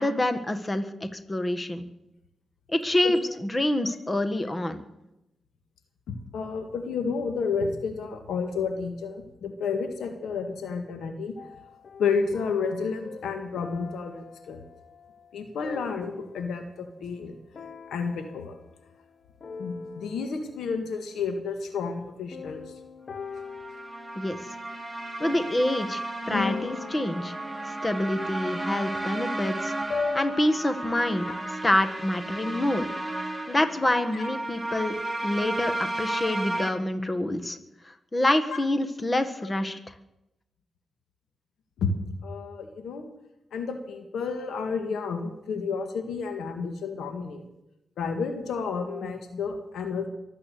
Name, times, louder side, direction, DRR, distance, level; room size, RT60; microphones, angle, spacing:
voice 1, 0.0-1.8 2.7-3.2 3.5-4.8 24.1-24.4 25.2-27.4 27.7-29.7 30.1-31.2 31.6-32.9 33.5-34.9 35.2-37.6 38.1-39.8, left 1 dB, 25° left, 9 dB, 1.7 m, -26 dB
voice 2, 6.1-11.3 12.0-14.7 15.3-17.3 17.9-18.6 19.6-22.6 31.3-31.4 34.1-34.3 38.5-38.6 39.4-39.5 41.8-41.9 42.2-43.1 43.5-47.4 48.0-50.1, left 5 dB, 85° left, 6 dB, 1.7 m, -31 dB
sound 1, 11.4-16.8 17.5-19.1 19.4-20.7 22.3-25.4 26.3-30.4, left 5 dB, 60° left, 1.0 m, -39 dB
sound 2, 23.3-36.7, right 2 dB, 5° right, 3.4 m, -34 dB
24.0 x 8.6 x 6.8 m, 0.90 s
cardioid pair, 55°, 0 cm